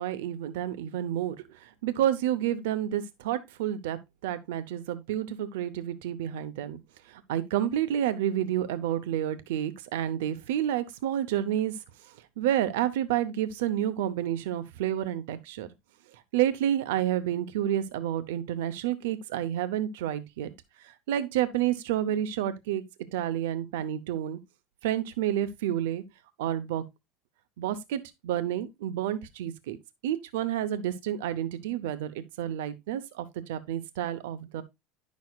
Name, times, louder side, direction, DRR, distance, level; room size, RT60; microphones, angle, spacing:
voice 1, 0.0-6.8 7.0-15.7 16.1-20.5 20.8-22.8 23.1-24.4 24.8-26.0 26.4-26.8 27.6-29.8 30.0-34.6, right 11 dB, 90° right, 0.7 m, -30 dB
10.5 x 6.2 x 2.3 m
cardioid pair, 155°, 0 cm